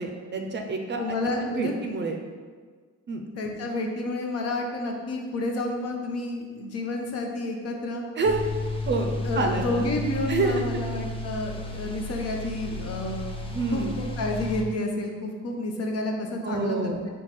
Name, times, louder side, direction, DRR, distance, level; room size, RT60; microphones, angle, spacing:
voice 1, 0.0-2.2 3.1-3.2 8.2-8.4 8.9-9.7 10.3-10.8 13.5-13.9 16.4-17.1, right 3 dB, 40° right, 3 dB, 0.5 m, -28 dB
voice 2, 1.0-1.8 3.4-8.0 9.2-13.2 13.7-17.0, left 2 dB, 55° left, 2 dB, 0.7 m, -30 dB
sound 1, 8.2-14.6, left 2 dB, 20° left, 0.5 m, -33 dB
4.5 x 2.3 x 4.2 m, 1.5 s
cardioid pair, 90°, 30 cm